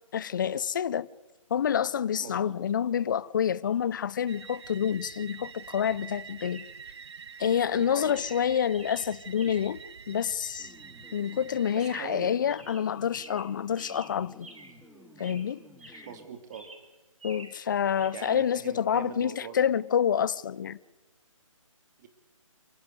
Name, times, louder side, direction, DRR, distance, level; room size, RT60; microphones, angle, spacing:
voice 1, 0.1-1.1 1.5-6.7 7.4-10.7 11.1-14.5 15.2-15.6 15.9-16.1 17.2-20.8, left 8 dB, 35° left, 0.7 m, -28 dB
voice 2, 2.2-2.5 7.7-8.2 11.7-12.4 16.0-16.7 18.1-19.7 22.0-22.1, right 7 dB, 30° right, 2.9 m, -42 dB
Chirp tweet, 3.6-3.8 6.4-6.8 7.5-7.8 8.1-9.9 11.8-12.2 12.5-14.9 15.2-16.2 16.5-17.7 18.0-18.4, right 2 dB, 70° right, 4.8 m, -50 dB
sound 1, 4.3-12.0, right 6 dB, 55° right, 0.7 m, -46 dB
sound 2, 10.6-16.2, left 1 dB, ahead, 2.2 m, -53 dB
29.0 x 10.5 x 9.7 m
figure-of-eight pair, 150°, 17 cm